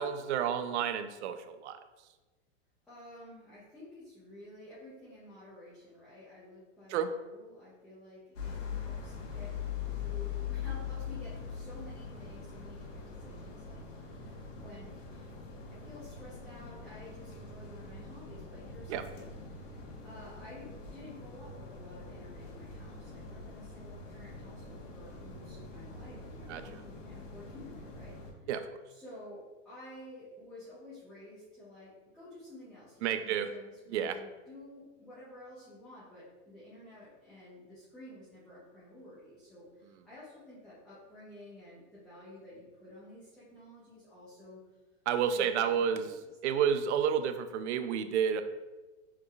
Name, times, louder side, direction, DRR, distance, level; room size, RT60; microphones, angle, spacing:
voice 1, 0.0-1.8 6.9-7.1 18.9-19.0 26.5-26.8 28.5-28.6 33.0-33.5 33.9-34.2 45.1-46.1 46.4-48.4, right 8 dB, 70° right, 9 dB, 0.5 m, -30 dB
voice 2, 2.9-15.3 15.7-28.5 28.9-44.6 45.2-46.6, left 1 dB, ahead, -11 dB, 0.3 m, -52 dB
sound 1, 8.4-28.3, left 6 dB, 90° left, 1.2 m, -43 dB
6.5 x 3.2 x 2.3 m, 1.2 s
supercardioid pair, 155°, 36 cm